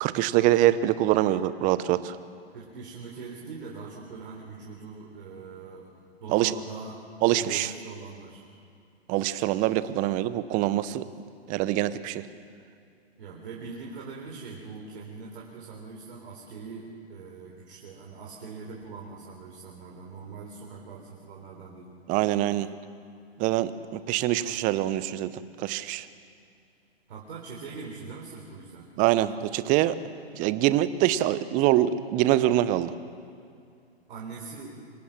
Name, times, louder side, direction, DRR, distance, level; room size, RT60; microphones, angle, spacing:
voice 1, 0.0-2.2 6.3-6.6 7.2-7.7 9.1-11.0 11.5-12.2 22.1-22.7 23.4-25.3 25.6-26.1 29.0-29.9 30.3-32.9, right 14 dB, 25° right, 15 dB, 0.8 m, -24 dB
voice 2, 2.5-5.9 6.2-7.0 7.3-8.4 11.0-11.1 13.2-21.9 27.1-28.9 34.1-34.8, right 4 dB, 55° right, -2 dB, 3.9 m, -42 dB
25.5 x 17.5 x 7.4 m, 2.4 s
figure-of-eight pair, 115°, 32 cm